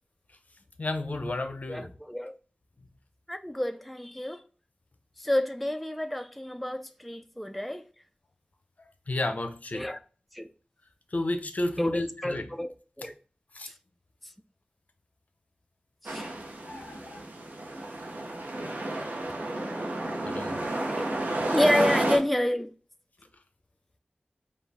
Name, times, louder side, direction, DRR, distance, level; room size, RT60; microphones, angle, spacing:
voice 1, 0.8-1.9 9.1-9.8 11.1-12.5 13.5-13.7 16.6-17.2 20.3-20.6, left 2 dB, 55° left, 0.6 m, -32 dB
voice 2, 1.7-2.3 3.3-4.4 5.2-7.8 9.7-10.0 10.3-10.5 11.8-13.1 13.7-13.8 16.0-16.3 21.0-21.1 21.5-22.7, left 1 dB, ahead, 0.3 m, -29 dB
sound 1, 16.1-22.2, right 1 dB, 70° right, 0.9 m, -31 dB
5.0 x 2.4 x 3.5 m
wide cardioid pair, 60°, 3 cm